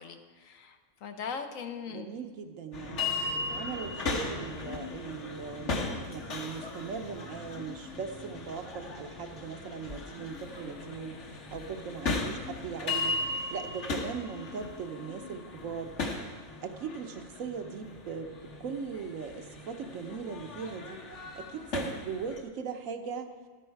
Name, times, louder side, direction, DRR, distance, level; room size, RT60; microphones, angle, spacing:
voice 1, 0.0-2.1, left 6 dB, 75° left, 6 dB, 1.3 m, -40 dB
voice 2, 1.9-3.1 3.5-5.8 6.1-13.2 13.5-15.9 16.6-21.1 21.3-23.3, right 6 dB, 75° right, 7 dB, 1.3 m, -39 dB
sound 1, 2.7-22.4, left 3 dB, 60° left, 1.5 m, -37 dB
12.0 x 9.8 x 4.6 m, 1.5 s
omnidirectional pair, 1.4 m